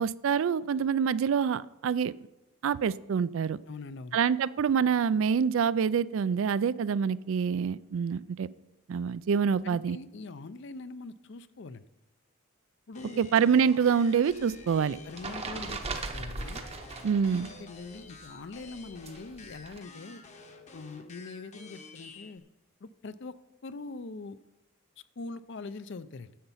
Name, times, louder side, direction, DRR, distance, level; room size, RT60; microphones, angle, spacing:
voice 1, 0.0-2.1 2.6-3.6 4.1-8.5 8.9-10.0 13.2-15.0 17.0-17.5, right 6 dB, 65° right, 18 dB, 0.3 m, -26 dB
voice 2, 3.7-4.2 9.6-11.8 12.9-13.2 15.0-16.6 17.4-20.2 20.7-22.4 22.8-23.3 23.6-24.4 25.2-26.4, left 3 dB, 55° left, 14 dB, 0.5 m, -43 dB
sound 1, 12.9-22.4, left 3 dB, 30° left, 0.9 m, -50 dB
sound 2, 14.3-17.6 17.9-19.8, right 3 dB, 30° right, 0.8 m, -39 dB
10.0 x 7.9 x 5.6 m, 0.94 s
head